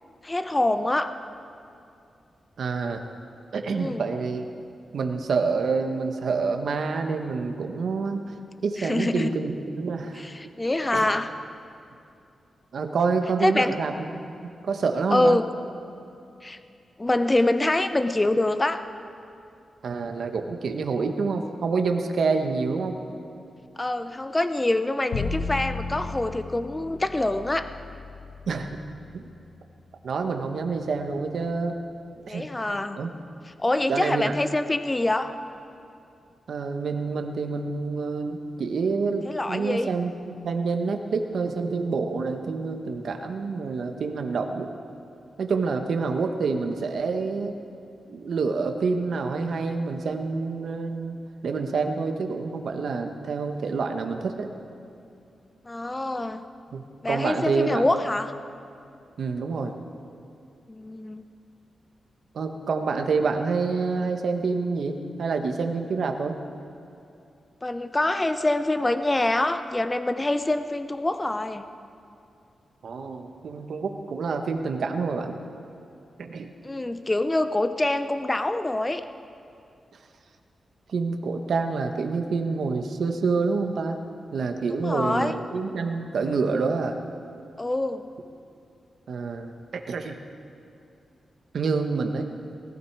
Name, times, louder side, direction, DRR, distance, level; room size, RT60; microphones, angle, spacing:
voice 1, 0.2-1.1 3.7-4.0 8.8-9.4 10.4-11.3 13.4-13.8 15.1-15.4 16.4-16.6 17.0-18.8 23.8-27.7 32.3-33.0 33.6-35.3 39.2-39.9 55.6-56.5 57.0-58.3 60.7-61.2 67.6-71.6 76.6-79.0 84.8-85.3 87.6-88.1, left 2 dB, 20° left, 10 dB, 0.6 m, -25 dB
voice 2, 2.6-3.0 3.5-4.5 4.9-8.3 8.6-10.2 10.9-11.1 12.7-14.1 14.6-15.4 19.8-23.0 28.5-28.8 29.1-29.2 30.0-31.8 32.3-32.5 33.0-33.1 33.9-34.4 36.5-44.7 45.4-47.5 48.1-51.2 51.4-54.5 56.7-58.0 59.2-59.7 62.3-66.4 72.8-75.4 76.2-76.5 80.9-84.0 84.3-87.0 89.1-90.2 91.5-92.2, right 4 dB, 70° right, 5 dB, 1.2 m, -27 dB
Bowed string instrument, 25.1-31.2, left 4 dB, 85° left, 1.1 m, -36 dB
19.5 x 14.5 x 4.8 m, 2.6 s
wide cardioid pair, 125°, 0 cm